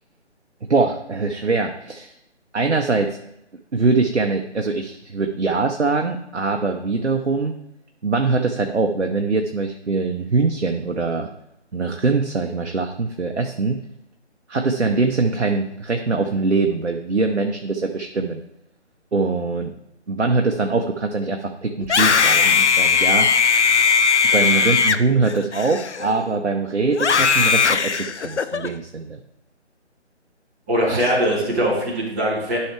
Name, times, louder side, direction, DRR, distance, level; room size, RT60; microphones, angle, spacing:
voice 1, 0.7-2.1 2.5-3.2 3.7-7.6 8.0-11.3 11.7-13.8 14.5-18.4 19.1-19.7 20.1-23.3 24.3-29.2 30.9-31.1, right 3 dB, 75° right, 4 dB, 0.9 m, -22 dB
Screaming, 21.8-26.3 26.9-28.7, left 5 dB, 75° left, 0.6 m, -18 dB
voice 2, 30.7-32.6, equal, 10° right, -7 dB, 1.7 m, -21 dB
11.5 x 5.6 x 3.3 m, 0.84 s
figure-of-eight pair, 155°, 35 cm